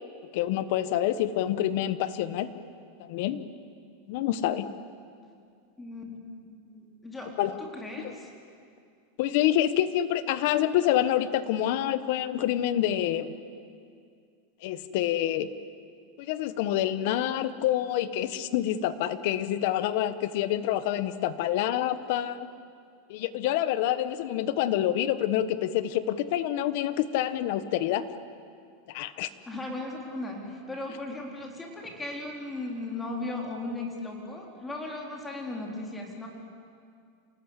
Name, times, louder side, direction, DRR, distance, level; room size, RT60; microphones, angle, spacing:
voice 1, 0.3-2.5 3.0-3.4 4.1-4.7 7.4-7.6 9.2-13.3 14.6-15.5 16.2-22.5 23.1-28.1 28.9-29.3, left 12 dB, 60° left, 13 dB, 1.2 m, -27 dB
voice 2, 5.8-6.2 6.5-8.3 29.5-36.3, left 2 dB, 10° left, 0 dB, 4.1 m, -37 dB
28.0 x 18.5 x 8.3 m, 2.3 s
supercardioid pair, 150°, 0 cm